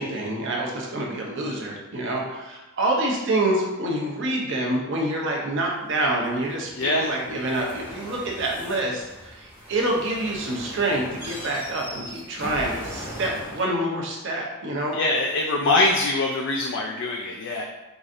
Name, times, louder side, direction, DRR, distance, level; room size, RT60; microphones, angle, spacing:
voice 1, 0.0-15.0, right 1 dB, 55° right, -2 dB, 0.7 m, -27 dB
sound 1, 5.9-13.6, equal, 10° right, 0.8 m, -40 dB
voice 2, 6.8-7.1 14.9-17.6, left 2 dB, 55° left, 0 dB, 0.3 m, -23 dB
4.7 x 2.6 x 2.5 m, 1.1 s
head